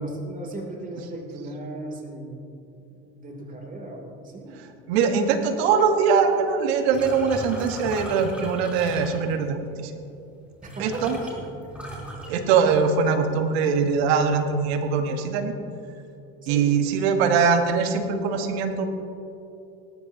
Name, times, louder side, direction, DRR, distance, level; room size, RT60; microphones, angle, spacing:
voice 1, 0.0-2.5 2.7-4.5 10.6-12.1 16.4-16.8, right 1 dB, 25° right, 1 dB, 2.8 m, -37 dB
voice 2, 4.9-9.9 10.8-11.2 12.3-15.5 16.5-18.9, right 5 dB, 80° right, 6 dB, 1.4 m, -22 dB
sound 1, 6.9-9.5 10.3-10.4 10.6-13.1 13.4-13.8 14.2-14.9, right 1 dB, 5° right, 3.3 m, -38 dB
18.5 x 13.0 x 2.8 m, 2.8 s
supercardioid pair, 95°, 31 cm